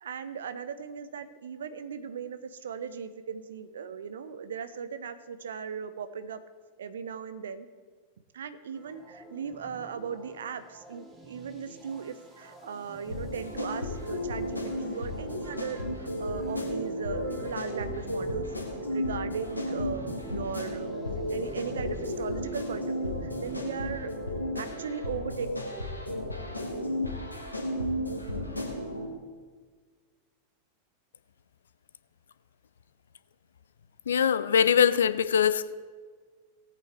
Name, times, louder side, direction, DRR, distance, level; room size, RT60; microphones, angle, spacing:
voice 1, 0.0-6.4 6.8-7.7 8.3-18.5 18.9-21.0 21.3-24.1 24.5-25.5, right 7 dB, 65° right, 12 dB, 0.7 m, -38 dB
sound 1, 8.7-24.7, right 2 dB, 10° right, 2.2 m, -50 dB
sound 2, 13.1-29.1, left 1 dB, 85° left, 1.6 m, -33 dB
voice 2, 34.1-35.7, left 8 dB, 65° left, 15 dB, 0.4 m, -22 dB
18.5 x 8.4 x 3.4 m, 1.5 s
figure-of-eight pair, 90°, 0 cm